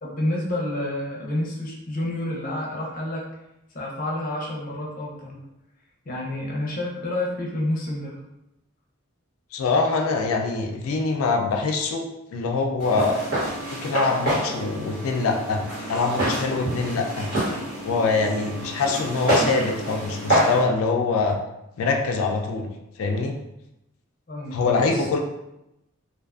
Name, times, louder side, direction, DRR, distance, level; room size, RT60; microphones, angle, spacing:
voice 1, 0.0-3.2 3.7-5.4 6.1-8.2 24.3-25.1, left 1 dB, 40° left, -3 dB, 0.6 m, -29 dB
voice 2, 9.5-13.2 13.8-15.6 15.9-17.3 17.8-21.4 21.8-22.7 23.0-23.3 24.5-25.2, left 4 dB, 90° left, 2 dB, 0.3 m, -24 dB
Walk footsteps, 12.8-20.6, right 1 dB, 50° right, 1.3 m, -27 dB
2.5 x 2.4 x 2.3 m, 0.89 s
head